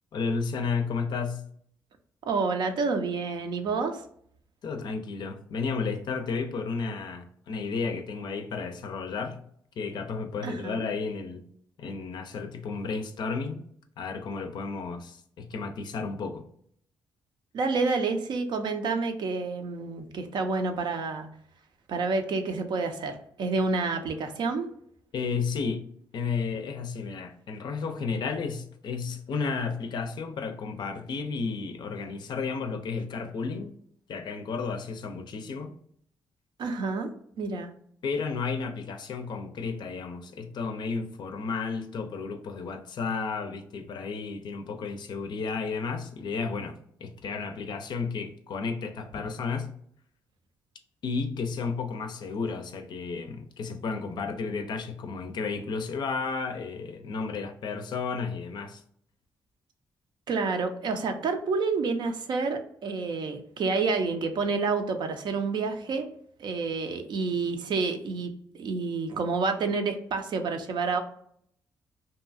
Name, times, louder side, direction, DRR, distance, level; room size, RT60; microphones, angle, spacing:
voice 1, 0.1-1.4 4.6-9.4 9.8-11.4 11.8-13.6 14.0-16.4 25.1-25.8 26.1-33.7 34.1-35.7 38.0-49.7 51.0-58.8, left 4 dB, 65° left, 0.4 m, -32 dB
voice 2, 2.3-4.0 10.4-10.9 17.5-21.3 21.9-24.7 36.6-37.1 37.4-37.7 60.3-66.1 66.4-71.0, right 4 dB, 65° right, 0.5 m, -29 dB
2.7 x 2.3 x 2.5 m
supercardioid pair, 60°, 8 cm